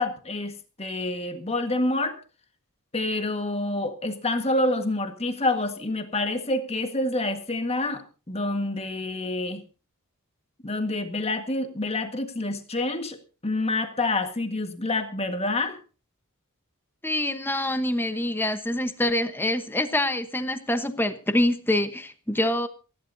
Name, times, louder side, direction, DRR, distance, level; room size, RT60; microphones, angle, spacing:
voice 1, 0.0-2.2 2.9-9.6 10.6-13.2 13.4-15.8, left 2 dB, 30° left, 7 dB, 1.6 m, -27 dB
voice 2, 17.0-22.7, left 1 dB, 10° left, 9 dB, 1.1 m, -25 dB
28.0 x 11.5 x 2.7 m, 0.34 s
head